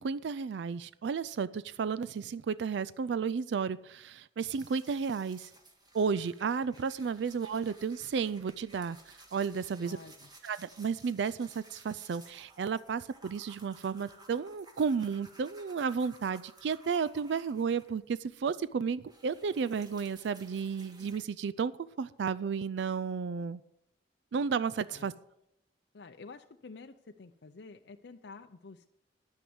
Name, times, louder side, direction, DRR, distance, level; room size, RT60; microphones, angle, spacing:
voice 1, 0.0-5.5 5.9-10.0 10.4-21.7 22.0-23.6 24.3-25.1, right 6 dB, 70° right, 17 dB, 0.4 m, -33 dB
sound 1, 4.5-18.3 18.6-21.2, right 2 dB, 20° right, 1.9 m, -57 dB
voice 2, 9.8-10.3 24.9-25.1 25.9-28.9, left 4 dB, 65° left, 6 dB, 0.6 m, -49 dB
10.5 x 9.3 x 7.9 m, 0.82 s
head